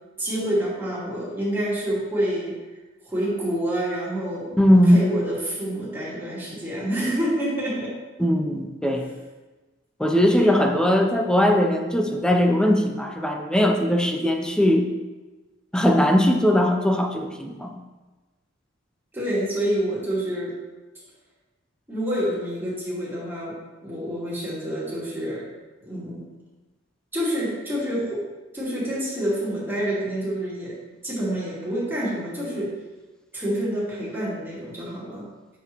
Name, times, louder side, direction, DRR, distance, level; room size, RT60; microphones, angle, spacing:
voice 1, 0.2-2.6 3.1-4.5 4.9-8.0 8.8-8.9 10.3-10.5 19.1-20.5 21.9-25.5 25.8-26.2 27.1-28.3 28.5-30.8 31.0-32.7 33.3-35.3, equal, 10° right, -7 dB, 2.2 m, -27 dB
voice 2, 4.6-5.0 8.2-9.0 10.0-14.9 15.7-17.7, equal, 5° left, 3 dB, 0.6 m, -19 dB
8.0 x 6.1 x 3.0 m, 1.2 s
head